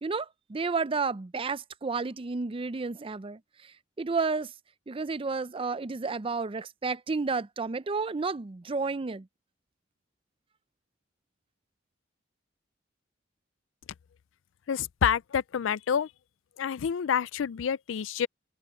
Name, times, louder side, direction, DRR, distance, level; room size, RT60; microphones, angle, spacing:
voice 1, 0.0-3.4 4.0-4.5 4.9-9.3, right 4 dB, 30° right, 0.5 m, -31 dB
voice 2, 14.7-16.1 16.6-18.3, left 8 dB, 80° left, 0.4 m, -28 dB
head